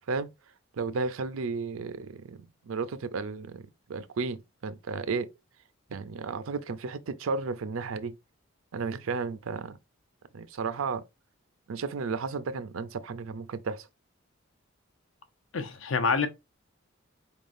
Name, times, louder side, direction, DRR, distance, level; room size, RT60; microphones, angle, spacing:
voice 1, 0.7-5.3 5.9-8.2 8.7-9.8 10.3-11.0 11.7-13.9, right 4 dB, 85° right, 0.5 m, -33 dB
voice 2, 15.5-16.3, left 5 dB, 70° left, 0.6 m, -26 dB
4.2 x 3.6 x 2.5 m
head